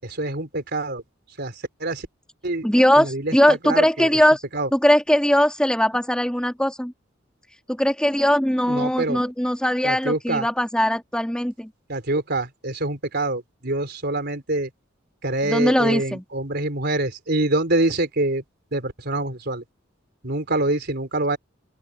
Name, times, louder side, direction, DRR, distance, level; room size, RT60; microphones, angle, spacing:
voice 1, 0.0-1.0 1.3-2.1 2.4-2.7 3.0-4.2 4.5-4.7 8.7-9.2 9.8-10.5 11.9-14.7 15.2-18.4 18.7-19.6 20.2-21.4, right 2 dB, 55° right, 4.2 m, -25 dB
voice 2, 2.6-4.4 4.7-6.9 7.7-11.7 15.5-16.2, equal, 5° left, 3.2 m, -20 dB
open air
head